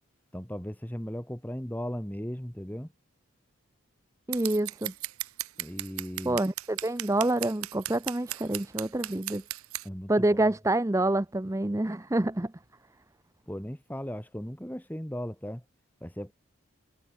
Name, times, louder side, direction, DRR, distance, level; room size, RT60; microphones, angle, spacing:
voice 1, 0.3-2.9 5.6-6.4 9.8-10.5 13.5-15.6 16.0-16.3, equal, 10° left, 2.1 m, -37 dB
voice 2, 4.3-4.9 6.3-9.4 10.1-12.5, right 1 dB, 15° right, 0.6 m, -27 dB
Scissors, 4.3-9.8, right 16 dB, 80° right, 0.7 m, -36 dB
head